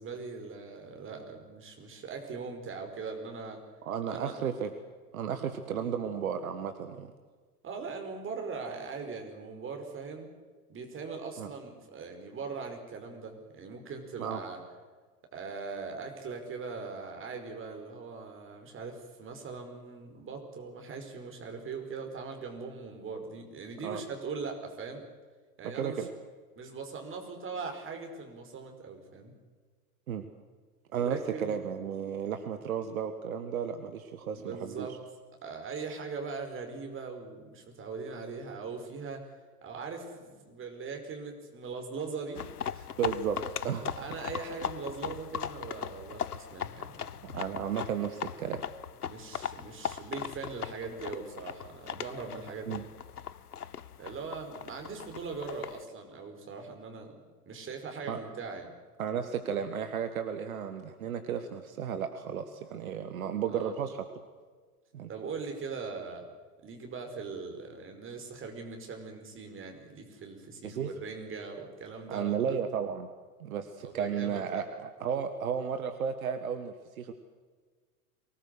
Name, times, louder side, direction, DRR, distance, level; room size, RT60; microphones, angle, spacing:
voice 1, 0.0-3.6 4.1-4.3 7.6-10.3 10.7-14.6 15.3-25.0 25.6-26.1 26.6-29.3 31.0-31.6 34.3-35.0 35.4-39.3 39.6-42.4 42.7-42.9 44.0-47.1 49.0-52.8 54.0-57.1 57.5-58.7 63.5-63.8 65.1-66.3 66.6-72.6 73.8-74.6, right 4 dB, 25° right, 4 dB, 5.2 m, -40 dB
voice 2, 3.9-4.7 5.1-7.1 11.4-11.5 14.2-14.4 23.8-24.0 25.7-26.1 30.1-30.3 30.9-34.9 43.0-43.4 43.6-44.1 47.2-48.6 52.7-52.8 58.1-58.2 59.0-64.0 64.9-65.1 70.6-70.9 72.1-73.1 73.4-77.1, right 7 dB, 65° right, 8 dB, 1.7 m, -33 dB
sound 1, 42.3-55.8, left 8 dB, 85° left, 0.7 m, -39 dB
23.5 x 19.0 x 8.1 m, 1.5 s
figure-of-eight pair, 85°, 44 cm